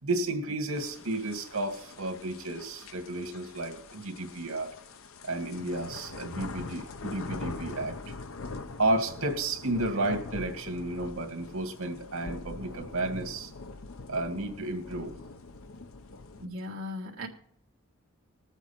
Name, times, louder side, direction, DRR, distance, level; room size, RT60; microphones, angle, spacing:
voice 1, 0.0-4.7 5.2-8.1 8.8-13.5 14.1-15.1, right 2 dB, 85° right, 3 dB, 2.4 m, -32 dB
sound 1, 0.7-16.5, left 3 dB, 70° left, 0.8 m, -43 dB
voice 2, 16.4-17.3, left 1 dB, 65° right, -4 dB, 1.8 m, -37 dB
20.0 x 8.1 x 4.4 m, 0.63 s
head